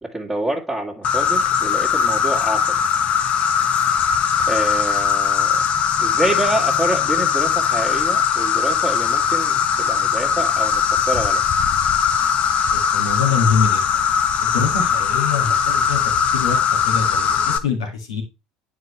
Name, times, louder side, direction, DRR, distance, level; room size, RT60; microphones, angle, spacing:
voice 1, 0.0-2.8 4.5-5.6 6.0-11.4, right 2 dB, 5° right, 1.9 m, -27 dB
Insect, 1.0-17.6, left 7 dB, 50° left, 0.9 m, -20 dB
voice 2, 12.7-14.0 14.4-16.0 16.3-18.2, left 6 dB, 80° left, 2.0 m, -24 dB
9.4 x 4.8 x 3.2 m
hypercardioid pair, 70°, 3 cm